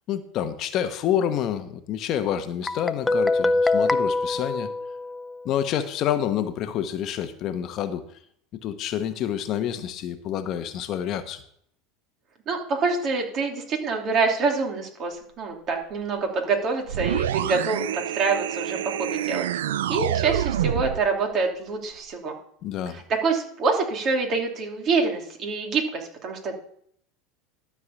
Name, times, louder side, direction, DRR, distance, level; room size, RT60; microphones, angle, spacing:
voice 1, 0.1-4.7 5.4-8.0 8.6-11.4 22.6-23.0, left 10 dB, 50° left, 9 dB, 1.0 m, -28 dB
Guitar, 2.7-5.5, left 2 dB, 10° left, 0.5 m, -24 dB
voice 2, 12.5-19.5 19.9-22.3 23.2-26.6, right 4 dB, 45° right, 2 dB, 3.0 m, -26 dB
sound 1, 16.9-21.1, right 11 dB, 85° right, 0.4 m, -27 dB
12.5 x 4.8 x 7.2 m, 0.65 s
hypercardioid pair, 95°, 0 cm